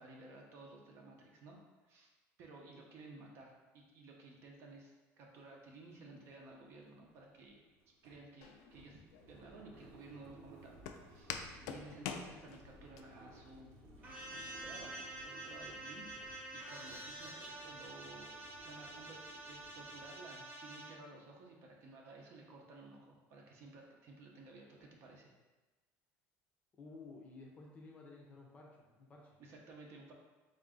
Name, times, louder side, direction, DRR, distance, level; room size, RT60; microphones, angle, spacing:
voice 1, 0.0-2.1 2.4-7.6 8.0-9.0 9.3-11.4 11.7-16.1 16.5-18.3 18.6-25.3 29.4-30.1, right 2 dB, 50° right, 0 dB, 0.7 m, -55 dB
sound 1, 5.4-5.5 5.8-20.5, right 2 dB, 80° right, 1.0 m, -60 dB
Walk footsteps, 8.4-13.0, left 7 dB, 70° left, 0.3 m, -46 dB
sound 2, 14.0-20.9, right 1 dB, 25° right, 1.0 m, -48 dB
voice 2, 26.7-29.4, left 3 dB, 25° left, 0 dB, 0.6 m, -54 dB
3.7 x 2.6 x 3.7 m, 1.2 s
cardioid pair, 150°, 6 cm